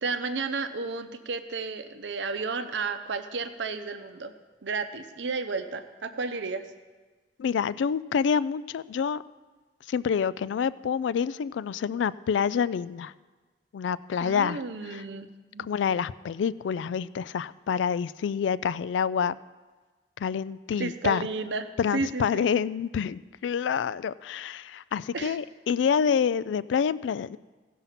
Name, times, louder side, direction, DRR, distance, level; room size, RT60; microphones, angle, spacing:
voice 1, 0.0-4.3 4.6-6.7 14.2-15.7 20.8-21.7 21.9-22.5 25.1-25.4, right 4 dB, 80° right, 9 dB, 0.7 m, -32 dB
voice 2, 7.4-9.2 9.9-13.1 13.7-14.6 14.9-15.0 15.6-19.3 20.2-21.2 21.8-27.4, left 7 dB, 85° left, 18 dB, 0.3 m, -27 dB
16.5 x 5.5 x 5.8 m, 1.3 s
head